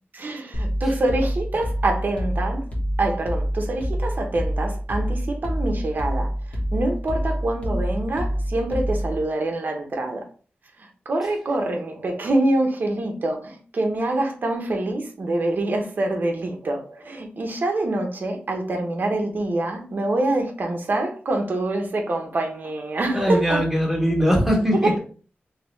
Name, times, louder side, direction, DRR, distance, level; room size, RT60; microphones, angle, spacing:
voice 1, 0.1-2.7 3.0-6.3 6.7-10.3 10.8-23.6 24.7-24.9, right 2 dB, 50° right, 0.8 m, -25 dB
sound 1, 0.5-9.2, equal, 35° left, 1.2 m, -26 dB
voice 2, 23.1-25.0, equal, 5° right, 1.2 m, -20 dB
3.5 x 3.3 x 3.1 m
wide cardioid pair, 155°, 4 cm